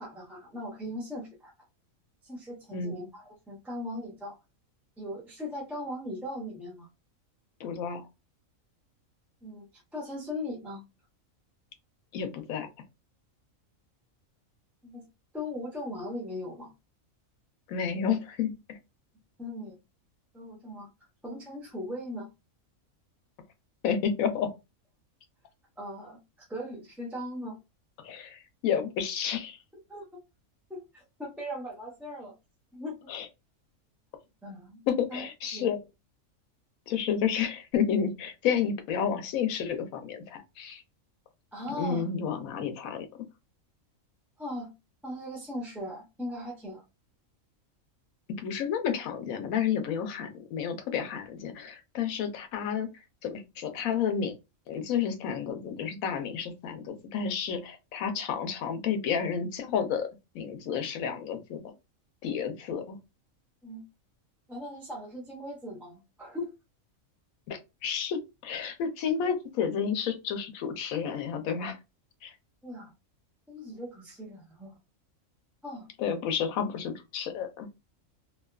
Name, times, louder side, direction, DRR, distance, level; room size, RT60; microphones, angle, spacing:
voice 1, 0.0-1.5 2.2-4.4 5.0-6.9 9.4-10.8 14.8-15.1 15.3-16.7 19.4-19.8 20.3-20.9 21.2-22.3 25.8-27.6 29.9-30.0 30.7-32.3 32.7-33.0 34.4-35.2 35.5-35.7 41.5-42.1 44.4-44.7 45.0-46.8 63.6-63.8 64.5-66.5 72.6-72.9 73.5-74.8 75.6-75.9, left 1 dB, ahead, 0.5 m, -39 dB
voice 2, 7.6-8.0 12.1-12.7 17.7-18.5 23.8-24.5 28.0-29.6 33.1-33.3 34.9-35.8 36.9-40.8 41.7-43.1 48.4-52.9 53.2-54.3 54.7-60.1 60.3-61.6 62.2-63.0 67.5-71.8 72.2-72.3 76.0-77.7, left 7 dB, 90° left, 1.1 m, -31 dB
2.7 x 2.3 x 2.2 m
omnidirectional pair, 1.4 m